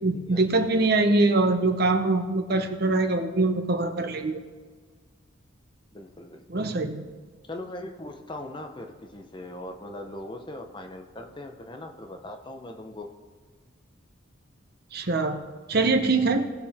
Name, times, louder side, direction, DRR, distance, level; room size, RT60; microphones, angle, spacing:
voice 1, 0.0-4.4 6.5-7.0 14.9-15.4 15.7-16.5, right 3 dB, 50° right, 6 dB, 0.8 m, -23 dB
voice 2, 5.9-6.4 7.5-13.1, left 1 dB, 20° left, 4 dB, 0.8 m, -40 dB
19.0 x 6.8 x 3.6 m, 1.5 s
head